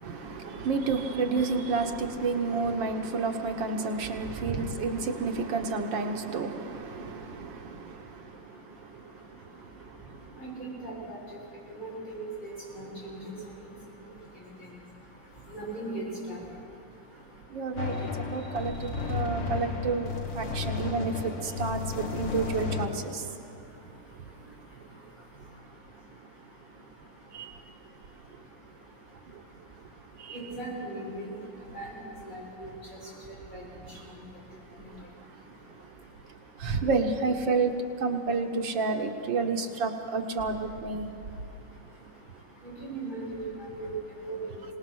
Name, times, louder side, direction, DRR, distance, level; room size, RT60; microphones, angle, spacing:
voice 1, 0.0-8.2 17.5-23.2 27.3-27.5 30.2-30.4 36.6-41.1, right 4 dB, 85° right, 4 dB, 2.0 m, -30 dB
voice 2, 10.4-10.9 11.8-13.2 15.5-16.4 30.3-31.3 31.7-31.9 32.3-32.7 33.5-33.6 42.6-43.4 43.8-43.9 44.3-44.4, right 2 dB, 25° left, -5 dB, 7.5 m, -37 dB
sound 1, 17.8-22.9, left 5 dB, 85° left, 2.6 m, -33 dB
25.0 x 19.0 x 6.4 m, 2.9 s
omnidirectional pair, 2.0 m